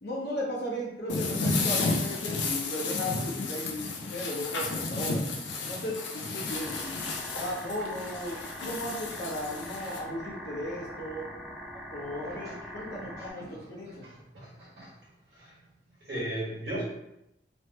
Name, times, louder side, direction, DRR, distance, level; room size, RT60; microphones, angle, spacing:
voice 1, 0.0-5.2 5.6-6.9 7.4-11.2 11.9-14.1, left 1 dB, 65° left, -5 dB, 0.9 m, -36 dB
sound 1, 1.1-10.0, left 3 dB, 90° left, 0.5 m, -32 dB
sound 2, 6.5-13.3, equal, ahead, 0.3 m, -42 dB
voice 2, 12.9-14.9 15.3-15.5 16.0-16.8, right 1 dB, 65° right, -7 dB, 1.5 m, -38 dB
3.2 x 2.2 x 2.9 m, 0.85 s
head